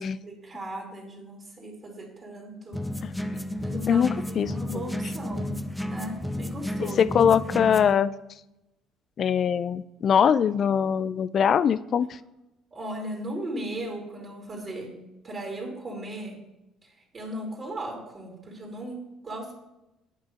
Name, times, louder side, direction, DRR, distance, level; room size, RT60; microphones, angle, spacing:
voice 1, 0.0-2.8 3.6-5.5 5.9-7.1 12.7-14.9 15.2-16.4 16.8-19.5, right 1 dB, 35° right, 0 dB, 2.5 m, -37 dB
sound 1, 2.7-8.0, left 1 dB, 5° left, 0.6 m, -32 dB
voice 2, 3.9-4.5 7.0-8.1 9.2-12.2, left 8 dB, 50° left, 18 dB, 0.3 m, -22 dB
9.7 x 5.5 x 5.1 m, 0.94 s
hypercardioid pair, 55°, 0 cm